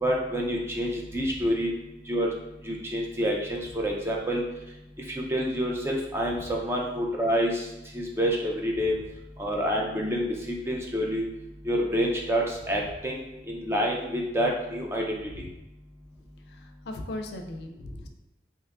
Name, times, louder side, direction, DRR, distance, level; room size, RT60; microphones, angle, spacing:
voice 1, 0.0-1.7 2.1-2.3 2.7-4.4 5.1-7.7 7.9-8.9 9.4-11.2 11.7-13.2 13.5-15.2, equal, 15° right, -1 dB, 0.3 m, -27 dB
voice 2, 16.5-18.1, left 1 dB, 75° left, 4 dB, 0.4 m, -38 dB
2.9 x 2.3 x 3.5 m, 0.95 s
head